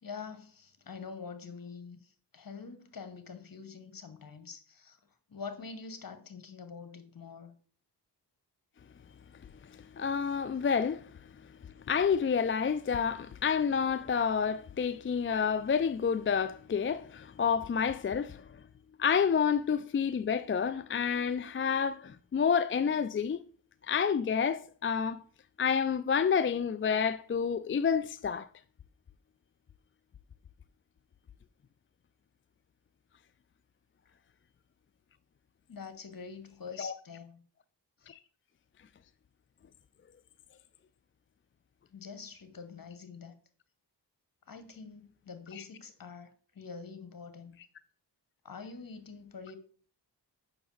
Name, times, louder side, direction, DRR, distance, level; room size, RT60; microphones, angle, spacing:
voice 1, 0.0-2.0 2.3-5.0 5.3-7.5 35.7-37.4 41.9-43.3 44.5-47.6 48.4-49.6, left 5 dB, 50° left, 1.4 m, -45 dB
voice 2, 10.0-11.1 11.9-18.4 19.0-23.4 23.9-25.2 25.6-28.5 36.8-36.9 38.1-38.2 45.5-45.6, left 6 dB, 30° left, 0.4 m, -29 dB
6.9 x 5.8 x 3.9 m
cardioid pair, 50°, 43 cm